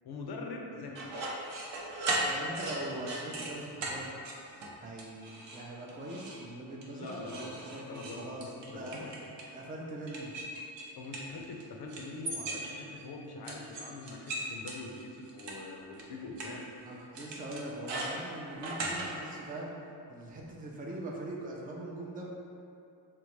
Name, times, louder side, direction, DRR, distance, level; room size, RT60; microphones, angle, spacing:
voice 1, 0.0-1.1 6.9-7.6 7.9-8.2 8.7-9.1 11.0-16.6, left 3 dB, 55° left, 1 dB, 0.6 m, -43 dB
sound 1, 0.9-3.5 3.8-4.0 4.2-4.7 5.0-5.6 5.9-6.4 6.8-9.5 10.1-11.6 11.9-13.0 13.4-15.5 16.0-16.1 16.4-16.5 17.1-19.1, right 2 dB, 60° right, 0.7 m, -37 dB
voice 2, 2.2-4.1 4.8-10.3 16.9-19.8 20.1-22.3, right 1 dB, 20° right, -2 dB, 0.5 m, -42 dB
3.6 x 2.1 x 3.0 m, 2.6 s
cardioid pair, 55°, 49 cm